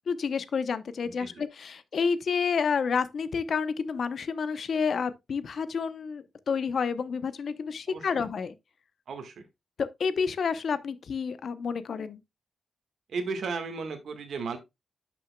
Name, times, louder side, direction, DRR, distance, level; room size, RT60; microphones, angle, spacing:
voice 1, 0.1-8.6 9.8-12.2, left 5 dB, 50° left, 0.7 m, -29 dB
voice 2, 1.0-1.4 7.9-8.2 9.1-9.4 13.1-14.6, right 4 dB, 65° right, 1.5 m, -35 dB
11.0 x 6.2 x 2.2 m
wide cardioid pair, 170°, 0 cm